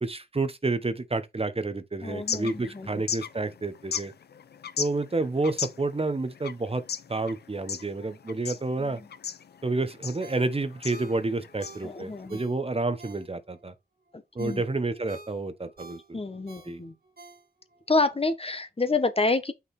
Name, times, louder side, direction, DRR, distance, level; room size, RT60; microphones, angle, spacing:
voice 1, 0.0-4.1 4.8-6.8 7.1-9.0 9.6-13.7 14.3-16.2 16.6-16.8, right 3 dB, 35° right, 1.0 m, -29 dB
sound 1, 2.0-12.3, left 8 dB, 85° left, 0.6 m, -38 dB
voice 2, 2.0-3.0 8.8-9.1 11.8-12.4 14.1-14.6 16.1-16.9 17.9-19.5, left 3 dB, 35° left, 1.2 m, -28 dB
Ringtone, 10.2-13.6 14.1-17.8 18.2-18.3, right 3 dB, 70° right, 3.1 m, -50 dB
5.9 x 3.8 x 4.3 m
cardioid pair, 40°, 17 cm